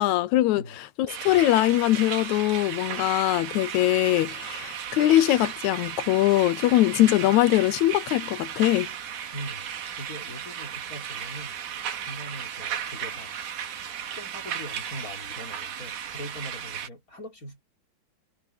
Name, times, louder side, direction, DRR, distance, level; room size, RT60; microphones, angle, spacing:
voice 1, 0.0-8.9, left 15 dB, 80° left, 1.9 m, -22 dB
sound 1, 1.1-16.9, right 8 dB, 85° right, 3.4 m, -35 dB
voice 2, 9.3-9.7 10.0-11.6 12.1-13.3 13.9-17.6, equal, 25° left, 4.0 m, -41 dB
omnidirectional pair, 3.5 m